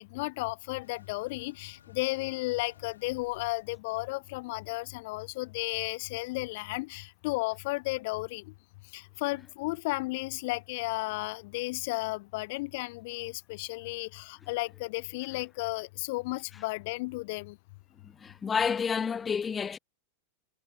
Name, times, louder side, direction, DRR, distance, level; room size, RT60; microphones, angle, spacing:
voice 1, 0.0-8.4 8.9-17.6, left 23 dB, 50° left, 0.6 m, -34 dB
sound 1, 0.8-5.0, left 8 dB, 65° left, 5.5 m, -60 dB
voice 2, 18.0-19.8, left 6 dB, 20° left, 0.9 m, -30 dB
figure-of-eight pair, 90°, 0 cm